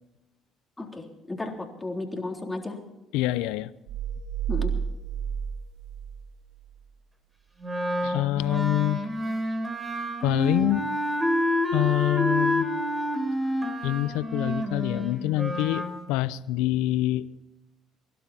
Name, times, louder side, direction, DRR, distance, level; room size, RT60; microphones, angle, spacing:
voice 1, 0.8-2.8 4.5-4.8, left 2 dB, 15° left, 2 dB, 3.6 m, -34 dB
voice 2, 3.1-3.7 8.0-9.0 10.2-10.9 11.7-12.7 13.8-17.3, left 16 dB, 85° left, 16 dB, 0.7 m, -25 dB
sound 1, 3.9-6.9, right 8 dB, 85° right, 2.3 m, -31 dB
Wind instrument woodwind instrument, 7.6-15.9, equal, 20° right, 3.6 m, -28 dB
23.5 x 12.0 x 4.3 m, 0.98 s
supercardioid pair, 75°, 0 cm